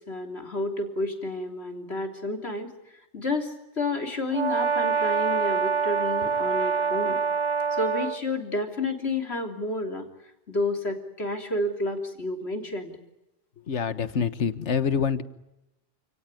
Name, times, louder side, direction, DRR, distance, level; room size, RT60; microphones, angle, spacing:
voice 1, 0.1-2.7 3.1-7.2 7.7-10.1 10.5-12.9, left 2 dB, 65° left, 5 dB, 3.6 m, -30 dB
Brass instrument, 4.3-8.2, right 5 dB, 25° right, 1.4 m, -25 dB
voice 2, 13.7-15.2, left 6 dB, 85° left, 13 dB, 1.6 m, -26 dB
29.0 x 18.5 x 9.9 m, 0.93 s
omnidirectional pair, 1.2 m